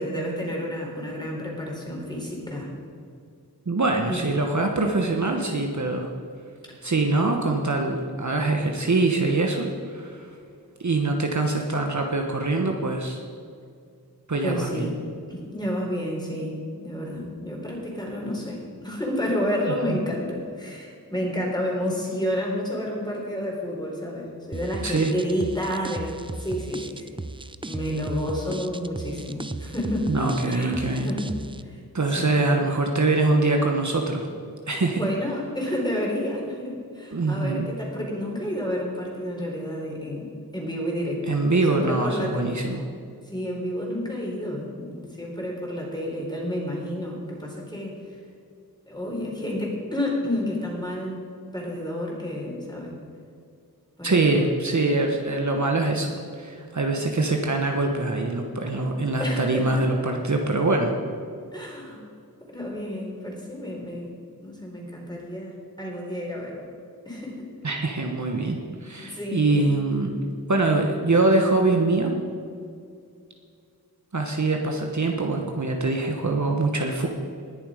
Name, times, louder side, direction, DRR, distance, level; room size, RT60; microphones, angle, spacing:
voice 1, 0.0-2.7 4.1-4.2 14.4-15.0 15.3-27.1 27.6-30.1 30.4-31.3 31.6-31.8 32.2-32.4 34.9-40.3 40.5-41.4 41.7-42.5 43.3-47.9 48.9-51.2 51.5-53.0 54.0-54.5 58.8-58.9 59.2-59.8 61.5-62.0 62.5-64.1 64.4-66.6 67.1-67.5 69.0-69.7, equal, 10° left, -2 dB, 3.8 m, -30 dB
voice 2, 3.7-6.1 6.8-10.3 10.8-13.2 14.3-14.9 19.9-20.0 24.8-25.1 30.1-31.1 31.9-34.3 34.7-35.0 37.1-37.7 41.3-42.8 54.0-56.1 56.4-60.9 67.6-70.1 70.5-72.1 74.1-77.1, right 2 dB, 50° right, 2 dB, 1.2 m, -24 dB
sound 1, 24.5-31.6, right 2 dB, 15° right, 0.4 m, -36 dB
20.0 x 7.1 x 5.0 m, 2.4 s
wide cardioid pair, 75°, 37 cm